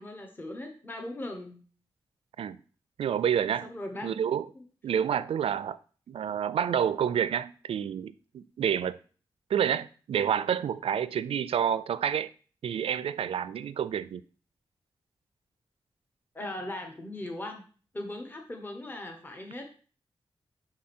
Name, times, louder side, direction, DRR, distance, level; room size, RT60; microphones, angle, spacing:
voice 1, 0.0-1.6 3.6-4.1 4.5-4.6 16.3-17.6 17.9-19.8, left 1 dB, 20° left, 1.1 m, -39 dB
voice 2, 3.0-3.7 4.0-4.5 4.8-5.8 6.1-9.0 9.5-12.3 12.6-14.2, right 8 dB, 85° right, 0.4 m, -28 dB
5.9 x 4.9 x 4.3 m
wide cardioid pair, 120°, 9 cm